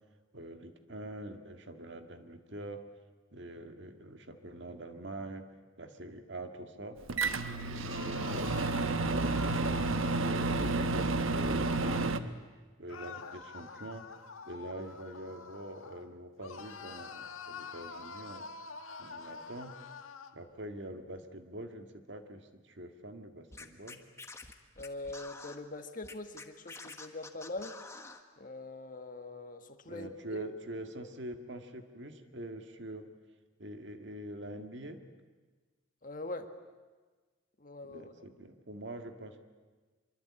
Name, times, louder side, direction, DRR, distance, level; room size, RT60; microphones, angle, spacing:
voice 1, 0.3-2.8 3.3-5.5 5.8-7.0 7.5-12.4 12.8-14.1 14.4-18.5 19.0-19.7 20.3-24.0 29.9-33.1 33.6-35.0 37.9-39.4, right 1 dB, 60° right, 6 dB, 2.0 m, -44 dB
Microwave oven, 7.1-12.2, right 3 dB, 80° right, 1.1 m, -31 dB
sound 1, 7.8-12.2 12.9-16.1 16.4-20.4, left 4 dB, 85° left, 1.6 m, -46 dB
Scratching (performance technique), 23.5-25.6 26.0-28.2, left 3 dB, 15° left, 1.3 m, -47 dB
voice 2, 24.8-27.7 28.4-30.5 36.0-36.5 37.6-38.1, left 2 dB, 40° left, 7 dB, 1.6 m, -43 dB
25.0 x 23.5 x 8.7 m, 1.3 s
head